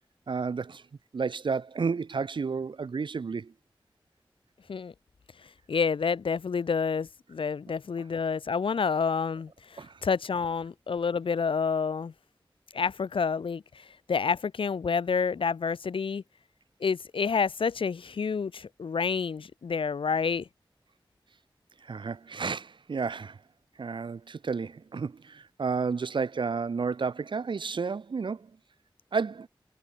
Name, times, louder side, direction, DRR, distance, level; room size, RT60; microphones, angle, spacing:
voice 1, 0.3-0.8 1.1-3.5 9.8-9.9 21.8-23.4 23.8-28.5 29.1-29.5, right 5 dB, 60° right, 0.4 m, -31 dB
voice 2, 5.7-12.1 12.7-16.2 16.8-20.5, left 5 dB, 75° left, 0.4 m, -29 dB
wide cardioid pair, 45°, 9 cm